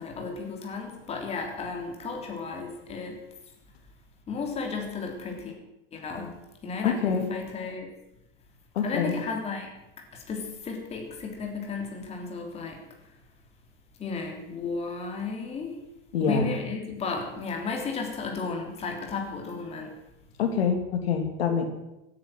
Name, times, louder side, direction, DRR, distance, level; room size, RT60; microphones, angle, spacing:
voice 1, 0.0-3.2 4.3-5.5 5.9-6.3 6.6-7.9 8.8-9.7 10.1-12.8 14.0-15.7 16.2-19.9, left 4 dB, 20° left, 2 dB, 3.4 m, -34 dB
voice 2, 6.8-7.3 8.7-9.2 16.1-16.6 20.4-21.7, left 6 dB, 85° left, 5 dB, 3.1 m, -26 dB
16.5 x 10.0 x 7.9 m, 0.94 s
supercardioid pair, 150°, 30 cm